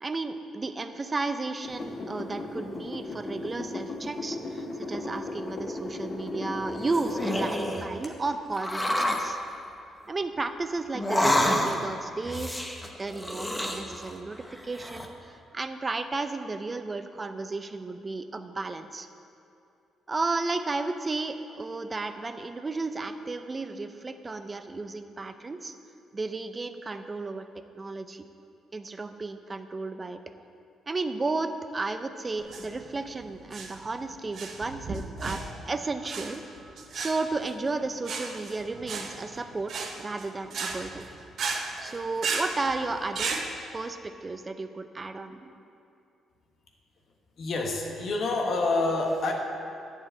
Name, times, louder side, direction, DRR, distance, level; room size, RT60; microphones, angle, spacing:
voice 1, 0.0-9.4 10.1-19.1 20.1-25.7 26.1-27.5 27.8-28.3 28.7-30.2 30.9-36.4 36.9-39.7 40.0-41.1 41.8-43.3 43.7-45.6, right 3 dB, 25° right, 9 dB, 0.6 m, -33 dB
sound 1, 1.6-7.6 8.0-8.1, left 2 dB, 35° left, 1.3 m, -36 dB
sound 2, 6.7-7.9 8.6-9.3 10.9-11.9 12.2-14.2 14.5-15.1, left 1 dB, 10° left, 1.0 m, -28 dB
sound 3, 32.4-43.5, right 4 dB, 60° right, 1.0 m, -35 dB
voice 2, 47.4-49.3, left 2 dB, 60° left, 1 dB, 1.4 m, -27 dB
10.5 x 4.8 x 7.9 m, 2.6 s
cardioid pair, 90°, 0 cm